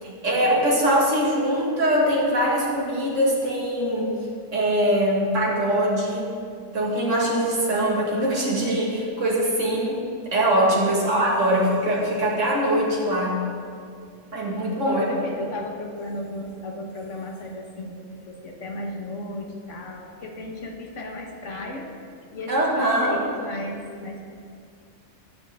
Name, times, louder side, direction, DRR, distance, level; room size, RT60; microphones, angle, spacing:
voice 1, 0.0-4.3 4.5-6.3 6.7-10.0 10.3-13.4 14.3-15.0 22.5-23.2, right 1 dB, 85° right, -4 dB, 2.5 m, -22 dB
voice 2, 10.9-11.5 14.8-21.9 22.3-24.2, left 1 dB, 80° left, 2 dB, 1.7 m, -35 dB
20.5 x 7.2 x 3.6 m, 2.3 s
omnidirectional pair, 1.3 m